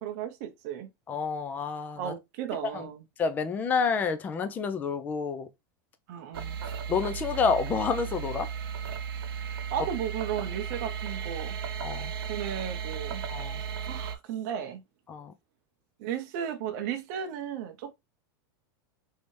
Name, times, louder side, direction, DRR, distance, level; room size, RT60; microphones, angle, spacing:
voice 1, 0.0-0.9 2.0-3.0 6.1-6.6 9.7-11.6 12.3-13.2 13.6-14.8 16.0-17.9, right 9 dB, 45° right, 0.6 m, -35 dB
voice 2, 1.1-2.1 2.7-2.9 3.2-5.5 6.9-8.5 11.8-12.1 13.3-13.6 15.1-15.3, left 5 dB, 15° left, 0.3 m, -29 dB
sound 1, 6.3-14.2, right 7 dB, 85° right, 0.7 m, -35 dB
3.3 x 2.8 x 3.1 m
supercardioid pair, 165°, 12 cm